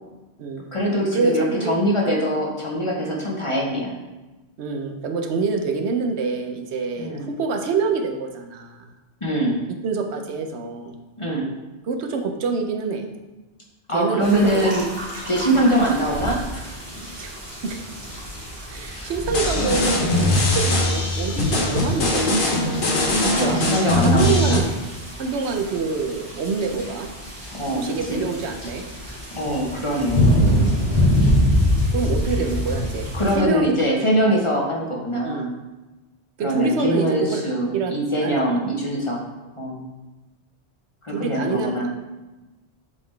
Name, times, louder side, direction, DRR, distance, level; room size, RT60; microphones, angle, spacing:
voice 1, 0.7-3.9 7.0-7.3 9.2-9.6 11.2-11.5 13.9-14.8 15.3-16.7 16.9-17.0 18.9-19.1 20.5-20.7 23.2-24.6 27.5-28.3 29.3-30.4 33.1-35.5 36.4-39.2 39.6-39.9 41.0-41.9, right 1 dB, 30° left, -2 dB, 0.9 m, -23 dB
voice 2, 4.6-8.9 9.8-10.9 11.9-13.1 13.9-14.6 17.2-17.4 17.6-17.8 18.7-22.9 23.2-23.6 23.9-24.7 25.2-27.1 27.7-28.8 31.9-33.1 33.3-33.7 35.2-35.5 36.4-37.4 37.7-37.9 38.2-38.4 41.1-41.9, right 4 dB, 75° right, 4 dB, 0.9 m, -26 dB
sound 1, 14.2-33.4, equal, 20° right, 2.0 m, -26 dB
sound 2, 19.3-24.6, left 1 dB, 50° left, 1.1 m, -21 dB
7.5 x 4.0 x 3.2 m, 1.1 s
omnidirectional pair, 1.1 m